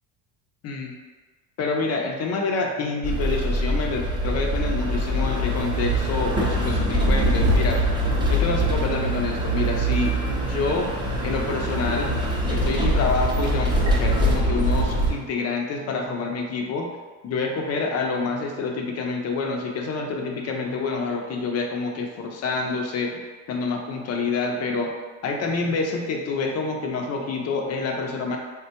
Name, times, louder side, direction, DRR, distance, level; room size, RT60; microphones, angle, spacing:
voice 1, 1.6-7.8 8.3-10.9 11.2-12.1 12.5-16.9 17.2-23.2 23.5-24.9 25.2-28.4, left 4 dB, 40° left, 2 dB, 0.5 m, -27 dB
sound 1, 3.0-15.1, right 1 dB, 10° right, 0.5 m, -23 dB
3.5 x 2.2 x 2.8 m, 1.4 s
cardioid pair, 115°, 42 cm